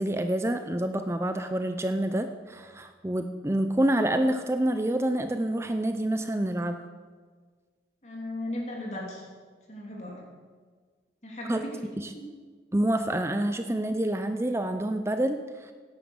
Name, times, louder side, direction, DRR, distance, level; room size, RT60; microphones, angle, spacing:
voice 1, 0.0-6.8 11.5-11.6 12.0-12.1 12.7-15.7, right 1 dB, 15° right, 7 dB, 0.5 m, -27 dB
voice 2, 8.0-9.2 9.7-10.2 11.2-11.8 12.1-12.3, left 1 dB, 40° left, -2 dB, 3.0 m, -36 dB
17.0 x 9.8 x 7.1 m, 1.5 s
head